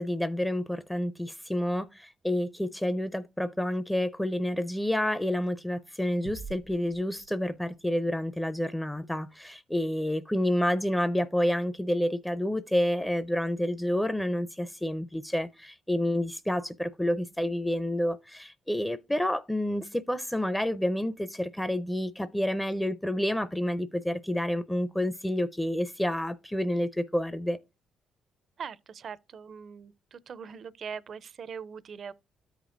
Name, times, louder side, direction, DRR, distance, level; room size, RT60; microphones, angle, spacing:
voice 1, 0.0-27.6, left 1 dB, 5° left, 0.5 m, -29 dB
sound 1, 6.2-8.0, right 6 dB, 85° right, 0.8 m, -46 dB
voice 2, 28.6-32.1, right 6 dB, 55° right, 0.4 m, -41 dB
13.5 x 5.1 x 2.5 m
cardioid pair, 90°, 0 cm